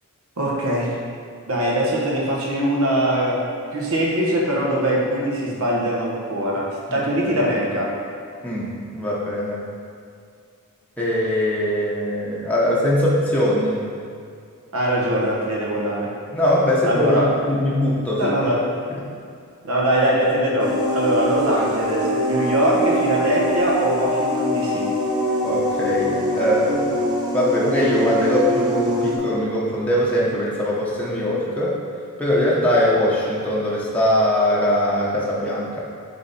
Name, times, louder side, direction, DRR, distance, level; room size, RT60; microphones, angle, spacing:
voice 1, 0.4-0.9 1.5-3.4 3.7-7.9 14.7-16.1 16.8-17.3 18.2-18.7 19.6-24.9, right 1 dB, 70° right, -3 dB, 1.3 m, -22 dB
voice 2, 8.4-9.6 11.0-13.8 16.3-18.3 18.9-19.1 25.4-26.9 27.3-31.7 32.2-35.8, left 1 dB, 5° left, -7 dB, 0.8 m, -21 dB
sound 1, 20.6-29.2, equal, 20° right, 1.0 m, -23 dB
7.6 x 3.6 x 4.2 m, 2.3 s
head